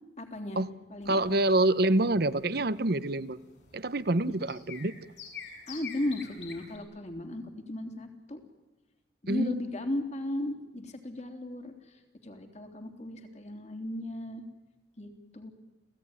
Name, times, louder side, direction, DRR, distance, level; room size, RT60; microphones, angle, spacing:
voice 1, 0.2-0.6 0.9-1.2 5.7-7.4 7.7-8.4 9.2-14.4 15.0-15.5, left 1 dB, 40° left, 5 dB, 3.3 m, -36 dB
sound 1, 1.0-6.8, left 6 dB, 65° left, 7.7 m, -47 dB
voice 2, 1.1-3.4 3.7-4.9 9.3-9.6, right 2 dB, 60° right, 15 dB, 0.9 m, -26 dB
30.0 x 17.5 x 9.8 m, 1.1 s
head